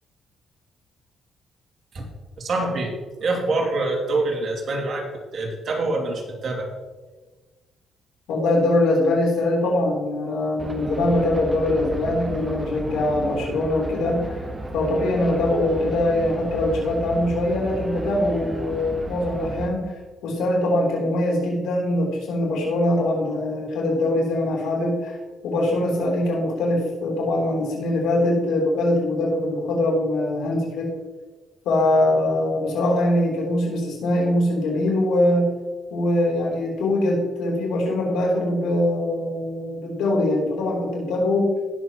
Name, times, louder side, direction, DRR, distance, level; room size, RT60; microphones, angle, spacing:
voice 1, 2.4-2.9 3.2-5.1 5.3-6.7, right 2 dB, 55° right, 0 dB, 2.6 m, -25 dB
voice 2, 8.3-14.4 14.7-19.9 20.2-25.2 25.4-30.9 31.7-35.5 35.9-41.5, left 1 dB, 85° left, -2 dB, 3.6 m, -22 dB
sound 1, 10.6-19.7, right 2 dB, 20° right, 1.0 m, -33 dB
18.0 x 6.8 x 3.1 m, 1.3 s
cardioid pair, 90°, 0 cm